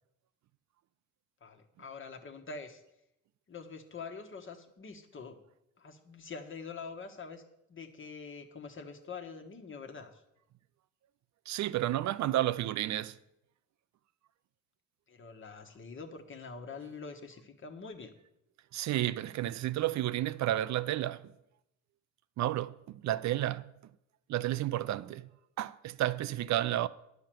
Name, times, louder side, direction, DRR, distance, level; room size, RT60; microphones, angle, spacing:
voice 1, 1.4-2.8 3.5-5.4 5.8-7.4 7.7-10.2 15.1-18.2, left 4 dB, 40° left, 1.3 m, -45 dB
voice 2, 11.5-13.1 18.7-21.2 22.4-23.7 24.3-25.2 25.6-26.9, right 14 dB, 65° right, 0.5 m, -31 dB
10.0 x 5.7 x 7.5 m
cardioid pair, 90°, 30 cm